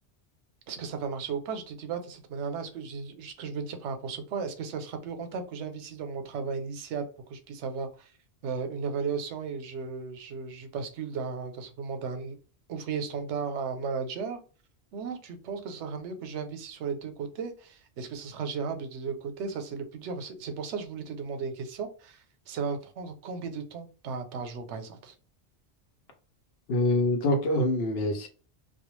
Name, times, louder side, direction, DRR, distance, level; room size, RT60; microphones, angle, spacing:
voice 1, 0.7-8.1 8.4-12.4 12.7-14.4 14.9-25.1, right 5 dB, 90° right, 0.9 m, -35 dB
voice 2, 26.7-28.3, left 1 dB, 65° left, 0.8 m, -25 dB
2.3 x 2.1 x 3.0 m
omnidirectional pair, 1.1 m